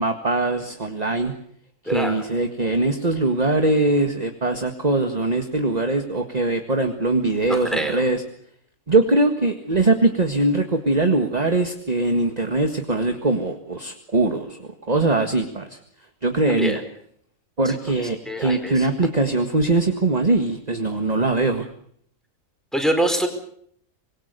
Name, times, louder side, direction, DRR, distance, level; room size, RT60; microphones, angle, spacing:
voice 1, 0.0-1.3 1.8-8.2 8.9-15.8 16.2-16.8 17.6-21.7, right 2 dB, 30° right, 6 dB, 1.8 m, -21 dB
voice 2, 1.9-2.2 7.5-8.0 16.5-16.8 18.3-18.9 22.7-23.3, right 1 dB, ahead, 5 dB, 4.7 m, -24 dB
25.5 x 22.0 x 6.8 m, 0.64 s
omnidirectional pair, 1.4 m